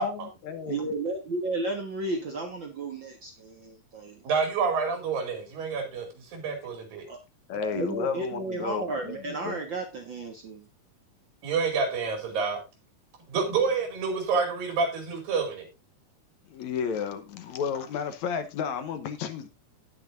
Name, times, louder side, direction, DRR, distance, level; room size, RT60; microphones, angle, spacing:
voice 1, 0.0-0.8 7.5-9.2 9.4-9.6 16.5-19.5, left 7 dB, 70° left, 2.0 m, -32 dB
voice 2, 0.7-4.2 7.1-7.2 7.5-10.7, right 2 dB, 50° right, 1.5 m, -33 dB
voice 3, 4.2-7.1 11.4-12.6 13.3-15.7, right 5 dB, 80° right, 4.4 m, -28 dB
18.0 x 6.3 x 2.5 m
omnidirectional pair, 4.0 m